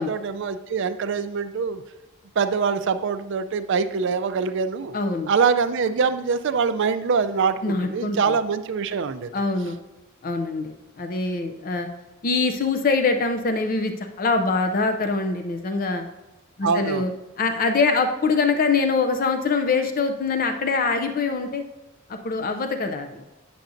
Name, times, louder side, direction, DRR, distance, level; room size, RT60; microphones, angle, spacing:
voice 1, 0.0-1.8 2.4-5.0 5.3-9.3 16.6-17.1, right 5 dB, 55° right, 10 dB, 0.4 m, -24 dB
voice 2, 4.9-5.3 7.6-8.2 9.3-9.8 10.2-11.9 12.2-16.0 16.6-17.1 17.4-21.6 22.1-23.2, left 4 dB, 40° left, 7 dB, 0.4 m, -24 dB
9.0 x 6.9 x 2.6 m, 1.0 s
head